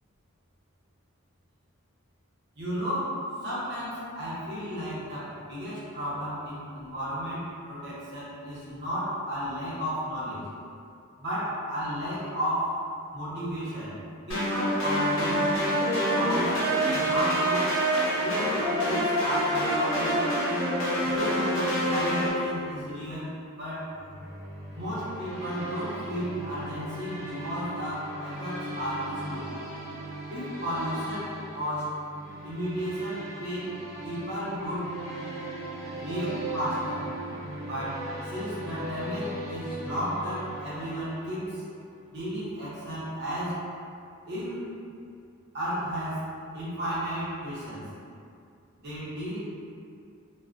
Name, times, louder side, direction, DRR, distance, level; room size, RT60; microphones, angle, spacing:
voice 1, 2.6-10.4 11.2-12.7 13.1-14.0 14.3-15.7 16.1-17.7 18.2-20.3 21.0-23.9 24.7-29.5 30.3-31.9 32.4-34.9 35.9-37.1 37.6-41.6 42.1-43.6 44.3-44.6 45.5-47.9 48.7-49.4, equal, 55° right, -10 dB, 0.8 m, -33 dB
sound 1, 14.3-22.3, equal, 70° left, 0.8 m, -26 dB
sound 2, 23.9-41.6, right 1 dB, 85° right, 0.8 m, -39 dB
2.3 x 2.2 x 2.5 m, 2.5 s
head